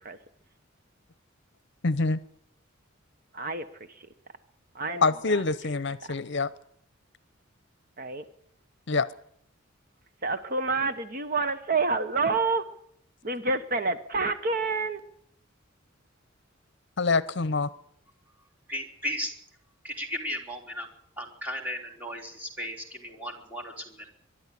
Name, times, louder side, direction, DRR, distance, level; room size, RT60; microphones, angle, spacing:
voice 1, 1.8-2.2 4.9-6.5 8.9-9.1 17.0-17.7, left 3 dB, 60° left, 17 dB, 0.8 m, -25 dB
voice 2, 3.3-4.1 4.7-5.4 6.0-6.1 8.0-8.2 10.2-12.7 13.2-15.0, right 3 dB, 45° right, 10 dB, 1.1 m, -28 dB
voice 3, 18.7-19.3 19.8-20.9 21.2-24.1, equal, 10° right, 0 dB, 3.5 m, -35 dB
23.0 x 11.5 x 10.0 m, 0.67 s
head